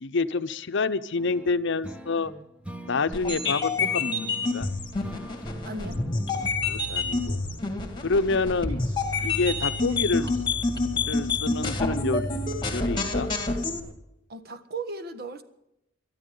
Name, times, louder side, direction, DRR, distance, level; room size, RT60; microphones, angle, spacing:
voice 1, 0.0-2.3 2.9-4.7 6.7-7.4 8.0-8.8 9.2-10.3 11.1-12.3 12.7-13.3, left 3 dB, 65° left, 0.7 m, -27 dB
sound 1, 1.2-6.5, right 1 dB, 5° right, 1.1 m, -40 dB
sound 2, 3.1-13.8, left 3 dB, 25° left, 2.1 m, -28 dB
voice 2, 5.6-6.0 14.3-15.4, right 3 dB, 55° right, 1.4 m, -36 dB
sound 3, 6.3-13.9, equal, 75° right, 2.1 m, -36 dB
23.0 x 13.0 x 3.9 m
head